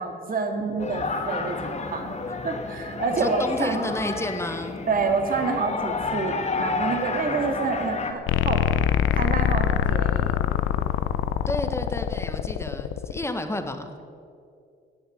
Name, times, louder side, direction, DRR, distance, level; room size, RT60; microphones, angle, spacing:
voice 1, 0.0-3.9 4.9-8.6 9.1-10.4, right 4 dB, 45° right, 5 dB, 2.1 m, -28 dB
sound 1, 0.8-8.1, left 4 dB, 35° left, 1.5 m, -31 dB
voice 2, 3.1-4.8 11.5-14.0, left 1 dB, 15° left, 7 dB, 1.4 m, -31 dB
sound 2, 8.3-13.2, left 10 dB, 90° left, 0.6 m, -24 dB
18.0 x 6.8 x 7.9 m, 2.4 s
cardioid pair, 90°, 20 cm